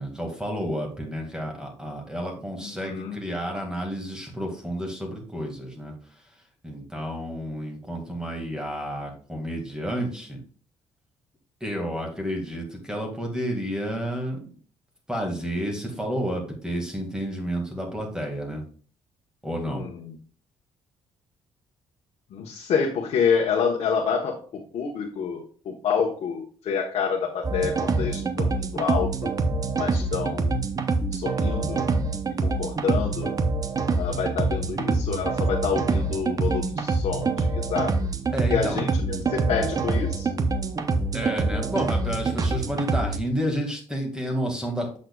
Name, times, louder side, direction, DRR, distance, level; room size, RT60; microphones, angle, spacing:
voice 1, 0.0-5.9 6.6-10.4 11.6-14.4 15.1-18.6 19.4-19.9 38.3-38.8 41.1-45.0, equal, 5° right, 2 dB, 2.0 m, -30 dB
voice 2, 2.6-3.2 19.7-20.1 22.3-29.3 29.7-30.6 31.1-31.9 32.4-33.3 34.0-38.1 38.5-40.3, left 6 dB, 65° left, -1 dB, 1.1 m, -28 dB
sound 1, 27.4-43.2, right 3 dB, 30° right, 0.7 m, -25 dB
7.7 x 6.4 x 2.3 m, 0.43 s
cardioid pair, 110°, 11 cm